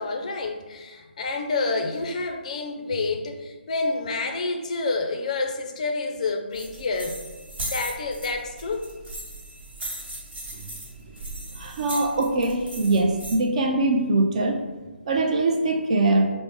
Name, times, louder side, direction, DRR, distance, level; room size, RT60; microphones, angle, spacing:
voice 1, 0.0-7.2 7.6-8.9, left 3 dB, 40° left, 3 dB, 0.4 m, -28 dB
sound 1, 6.5-13.4, right 2 dB, 65° right, 1.5 m, -37 dB
voice 2, 11.6-14.6 15.1-16.3, right 2 dB, 35° right, 3 dB, 0.4 m, -22 dB
4.8 x 2.0 x 3.5 m, 1.2 s
figure-of-eight pair, 150°, 6 cm